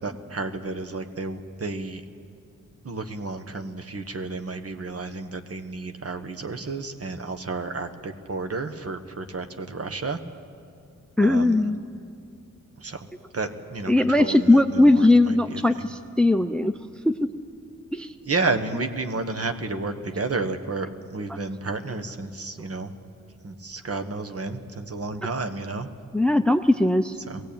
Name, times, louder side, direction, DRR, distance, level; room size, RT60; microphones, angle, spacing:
voice 1, 0.0-2.0 2.8-10.2 11.2-11.7 12.8-13.1 13.3-15.9 18.3-22.9 23.4-25.9 27.3-27.4, right 3 dB, 45° right, 6 dB, 1.5 m, -31 dB
voice 2, 11.2-11.8 13.9-16.8 17.0-17.3 17.9-18.1 21.3-21.4 26.1-27.2, left 2 dB, 5° left, 10 dB, 0.6 m, -19 dB
21.0 x 17.0 x 8.8 m, 2.4 s
cardioid pair, 70°, 32 cm